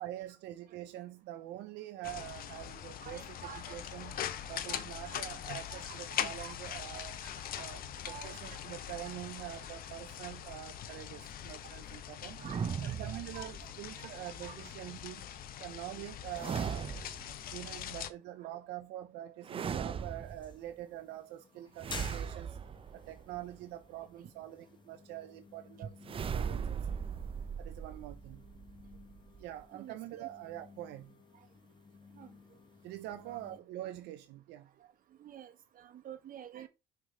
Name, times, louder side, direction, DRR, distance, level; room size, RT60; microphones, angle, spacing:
voice 1, 0.0-4.2 4.5-7.2 7.6-12.4 12.8-15.3 15.6-16.9 17.5-22.6 22.9-26.9 27.6-28.5 29.4-31.1 32.8-34.7, right 13 dB, 90° right, 0.6 m, -45 dB
sound 1, 2.0-18.1, left 10 dB, 60° left, 0.7 m, -42 dB
voice 2, 3.0-3.8 4.1-6.0 6.4-6.5 6.9-7.7 8.0-8.6 9.0-9.1 10.2-10.3 12.4-12.6 13.0-13.5 14.0-14.6 25.8-25.9 29.7-30.3 32.2-32.3 33.3-33.4 35.2-36.7, right 9 dB, 55° right, 1.2 m, -50 dB
sound 2, 12.4-13.9 16.3-17.4 19.4-20.6 21.8-23.6 26.0-29.6, right 7 dB, 35° right, 0.5 m, -38 dB
sound 3, 19.9-33.6, left 4 dB, 25° left, 1.2 m, -54 dB
6.3 x 3.4 x 5.0 m
cardioid pair, 110°, 17 cm